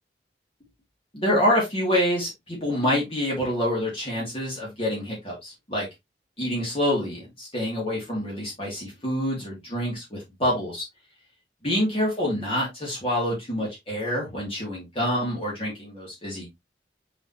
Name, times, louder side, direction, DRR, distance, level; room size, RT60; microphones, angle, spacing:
voice 1, 1.1-5.9 6.4-10.8 11.6-16.5, equal, 30° left, -4 dB, 2.6 m, -27 dB
5.9 x 5.7 x 2.9 m, 0.19 s
head